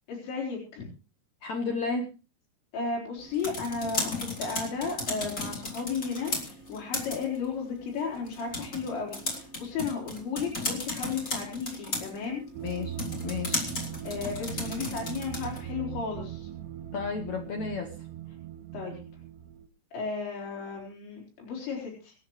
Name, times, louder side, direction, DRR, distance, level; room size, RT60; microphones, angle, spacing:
voice 1, 0.1-0.9 2.7-12.4 14.0-16.5 18.7-19.0 19.9-22.1, left 5 dB, 85° left, -2 dB, 6.6 m, -34 dB
voice 2, 1.4-2.1 12.6-13.7 16.9-18.1, left 4 dB, 70° left, 4 dB, 1.7 m, -33 dB
sound 1, 3.2-15.7, left 2 dB, 20° left, 3.1 m, -36 dB
sound 2, 12.5-19.7, right 11 dB, 80° right, 3.0 m, -40 dB
25.5 x 10.5 x 3.2 m, 0.32 s
omnidirectional pair, 5.0 m